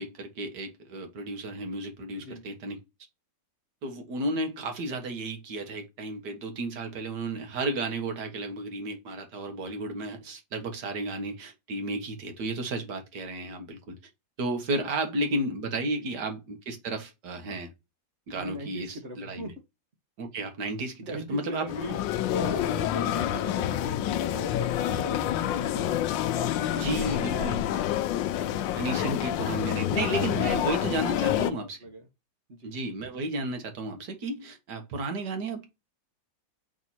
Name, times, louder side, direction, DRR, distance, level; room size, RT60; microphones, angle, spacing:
voice 1, 0.0-2.8 3.8-14.0 14.4-17.7 18.3-19.5 20.2-21.0 21.3-21.7 26.7-27.6 28.8-31.8 32.6-35.8, right 2 dB, 65° right, 2.0 m, -33 dB
voice 2, 2.1-2.5 14.8-15.1 18.3-19.5 21.0-22.0 22.4-25.9 26.3-27.9 30.1-30.2 30.7-30.8 31.2-32.1 32.5-32.7, right 1 dB, 40° right, 1.6 m, -40 dB
sound 1, 21.7-31.5, left 12 dB, 80° left, 1.3 m, -28 dB
6.3 x 3.6 x 4.3 m
omnidirectional pair, 2.0 m